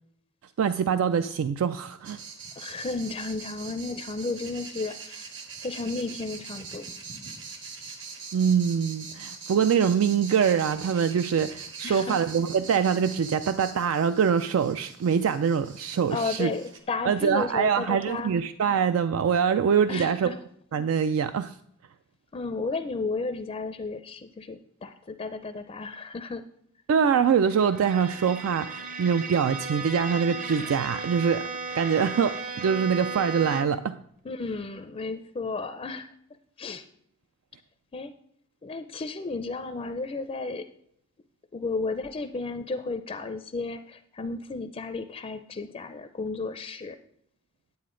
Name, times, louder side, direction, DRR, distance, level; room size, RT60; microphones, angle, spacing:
voice 1, 0.6-2.2 8.3-16.5 17.1-20.3 20.7-21.5 26.9-34.0, right 7 dB, 85° right, 11 dB, 0.3 m, -24 dB
sound 1, 2.0-16.8, right 5 dB, 65° right, 1.3 m, -43 dB
voice 2, 2.6-5.3 5.6-6.9 11.8-12.2 16.1-18.3 19.9-20.4 22.3-26.4 34.2-36.1 36.6-36.8 37.9-38.1 38.6-40.7 41.5-47.0, left 3 dB, 30° left, 9 dB, 0.4 m, -33 dB
Bowed string instrument, 27.5-33.9, right 3 dB, 40° right, 0.7 m, -35 dB
9.4 x 8.3 x 3.8 m, 0.67 s
head